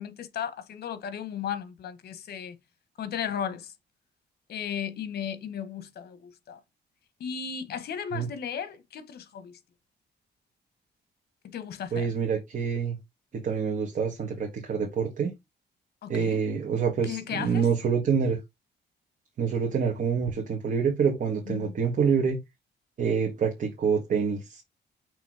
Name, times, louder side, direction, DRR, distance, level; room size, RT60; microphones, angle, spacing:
voice 1, 0.0-2.6 3.0-3.7 4.5-6.6 7.2-9.6 11.4-12.1 16.0-16.4 17.0-17.7 21.5-21.7, left 8 dB, 65° left, 1.2 m, -35 dB
voice 2, 11.9-13.0 13.4-15.3 16.1-18.4 19.4-22.4 23.0-24.6, right 6 dB, 50° right, 1.6 m, -26 dB
6.2 x 3.4 x 4.8 m
cardioid pair, 145°, 18 cm